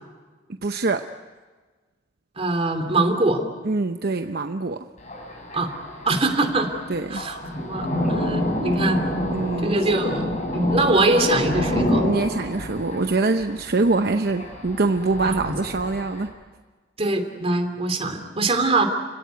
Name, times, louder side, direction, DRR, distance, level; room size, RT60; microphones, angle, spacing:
voice 1, 0.6-1.1 3.6-4.9 6.9-7.3 9.3-9.9 12.0-16.3, right 3 dB, 60° right, 7 dB, 0.8 m, -24 dB
voice 2, 2.4-3.4 5.5-5.7 6.1-6.7 7.1-7.4 7.7-9.0 9.6-10.3 10.5-12.0 15.2-15.5 17.0-18.8, right 2 dB, 35° right, 5 dB, 2.9 m, -22 dB
Thunder, 5.0-16.3, left 1 dB, 40° left, 6.3 m, -28 dB
29.5 x 17.0 x 9.4 m, 1.4 s
head